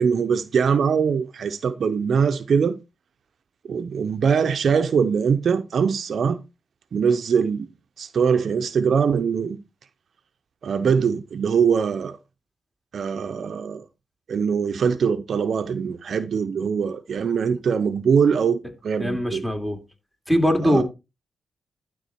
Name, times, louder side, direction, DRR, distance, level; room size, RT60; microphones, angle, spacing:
voice 1, 0.0-2.8 3.7-6.4 6.9-7.7 8.0-9.6 10.6-12.2 12.9-13.8 14.3-19.4 20.6-20.8, right 6 dB, 65° right, 0.7 m, -22 dB
voice 2, 19.0-19.8 20.3-20.8, equal, 5° left, 2.8 m, -21 dB
12.0 x 3.9 x 4.4 m
cardioid pair, 55°, 0 cm